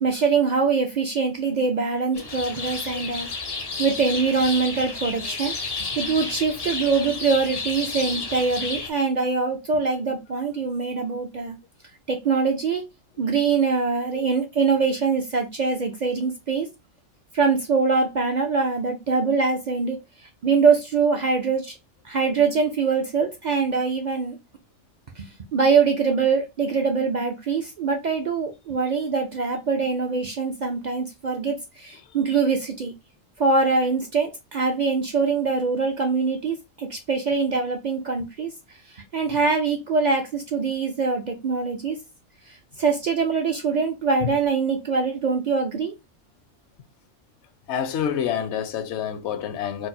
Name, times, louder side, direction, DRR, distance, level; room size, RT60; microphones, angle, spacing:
voice 1, 0.0-3.3 3.8-5.5 6.0-11.6 12.1-12.8 13.2-16.7 17.3-20.0 20.4-21.7 22.0-24.4 25.2-25.3 25.5-32.9 33.4-38.5 38.9-42.0 42.8-45.9, right 4 dB, 55° right, 0.5 m, -23 dB
sound 1, 2.1-8.9, left 3 dB, 35° left, 0.4 m, -31 dB
voice 2, 47.7-49.9, left 8 dB, 70° left, 0.8 m, -28 dB
4.5 x 2.0 x 2.7 m
omnidirectional pair, 1.3 m